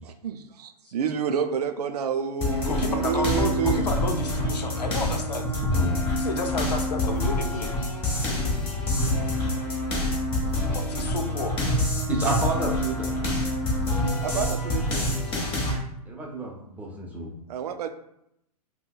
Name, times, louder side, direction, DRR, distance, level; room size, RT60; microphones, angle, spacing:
voice 1, 0.0-4.0 14.2-15.1 17.5-17.9, right 7 dB, 70° right, 8 dB, 0.4 m, -29 dB
sound 1, 2.4-15.7, left 1 dB, 25° left, 1.2 m, -26 dB
voice 2, 2.7-5.5 6.1-7.7 10.9-11.5, left 4 dB, 90° left, 5 dB, 0.6 m, -31 dB
voice 3, 5.6-5.9 12.1-13.2 16.1-17.3, right 1 dB, 10° right, -2 dB, 0.7 m, -29 dB
5.4 x 2.2 x 2.3 m, 0.78 s
hypercardioid pair, 125°, 20 cm